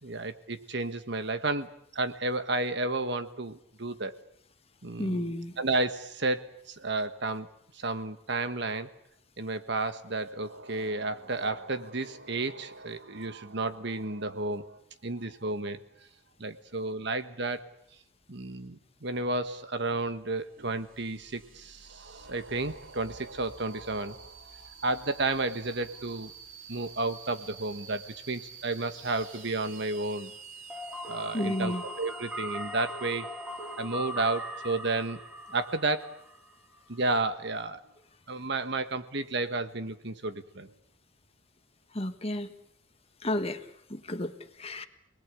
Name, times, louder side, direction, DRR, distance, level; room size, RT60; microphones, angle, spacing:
voice 1, 0.0-4.1 4.8-8.9 9.4-15.8 16.4-17.6 18.3-26.3 26.7-28.0 28.3-30.3 31.1-33.3 33.8-35.2 35.5-36.0 36.9-37.8 38.3-40.7, right 2 dB, 60° right, 10 dB, 1.5 m, -32 dB
voice 2, 5.0-5.5 31.3-31.8 41.9-42.5 43.2-43.6 43.9-44.3 44.6-44.9, left 1 dB, 30° left, 8 dB, 1.5 m, -31 dB
sound 1, 20.1-36.5, right 5 dB, 80° right, 4.0 m, -50 dB
sound 2, 30.7-36.5, equal, 10° right, 3.5 m, -39 dB
29.5 x 20.5 x 8.4 m, 0.74 s
head